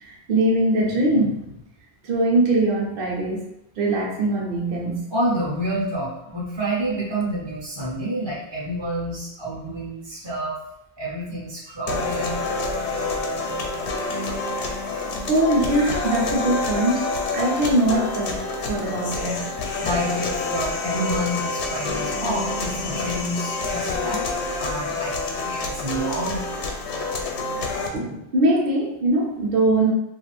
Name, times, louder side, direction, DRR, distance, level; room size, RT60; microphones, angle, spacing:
voice 1, 0.0-1.6 2.0-3.4 3.8-5.0 15.3-18.4 18.6-19.5 27.9-29.9, right 1 dB, 60° right, -2 dB, 0.9 m, -22 dB
voice 2, 5.1-10.6 11.0-12.5 13.5-13.6 19.8-24.2 24.6-26.6, right 1 dB, 30° right, -6 dB, 0.5 m, -28 dB
sound 1, 11.9-27.9, left 3 dB, 85° left, 0.9 m, -27 dB
2.5 x 2.4 x 3.2 m, 0.82 s
omnidirectional pair, 1.1 m